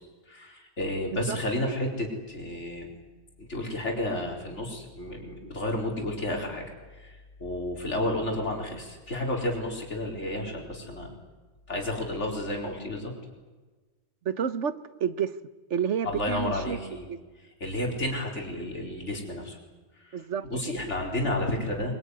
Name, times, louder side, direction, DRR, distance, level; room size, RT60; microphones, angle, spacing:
voice 1, 0.3-2.9 3.4-6.6 6.9-11.1 11.7-13.1 16.0-17.0 17.6-19.6 20.0-22.0, left 1 dB, 80° left, 0 dB, 4.6 m, -31 dB
voice 2, 14.2-15.3 15.7-17.2 20.1-20.5, right 7 dB, 85° right, 13 dB, 1.4 m, -30 dB
24.5 x 22.5 x 9.7 m, 1.3 s
omnidirectional pair, 1.2 m